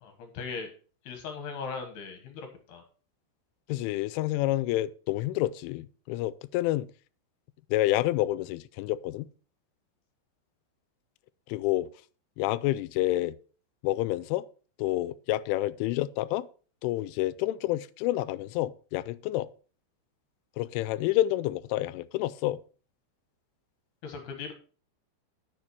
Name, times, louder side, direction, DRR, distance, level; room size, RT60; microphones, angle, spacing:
voice 1, 0.0-0.7 1.1-2.8 24.0-24.5, left 5 dB, 65° left, 2.9 m, -38 dB
voice 2, 3.7-6.9 7.7-9.3 11.5-11.9 12.4-13.4 13.8-14.5 14.8-16.5 16.8-19.5 20.6-22.6, left 16 dB, 85° left, 3.0 m, -28 dB
10.0 x 6.8 x 4.6 m
omnidirectional pair, 5.6 m